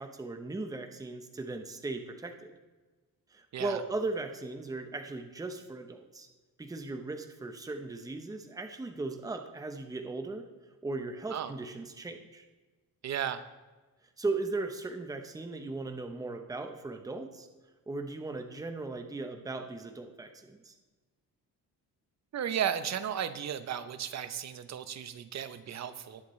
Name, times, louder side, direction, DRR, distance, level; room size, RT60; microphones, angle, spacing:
voice 1, 0.0-2.5 3.3-6.3 6.6-10.5 10.8-12.4 14.2-17.5 17.9-20.8, right 3 dB, 10° right, 6 dB, 0.8 m, -37 dB
voice 2, 13.0-13.4 22.3-26.2, right 9 dB, 50° right, 11 dB, 0.8 m, -34 dB
19.0 x 7.2 x 3.2 m, 1.2 s
cardioid pair, 135°, 35 cm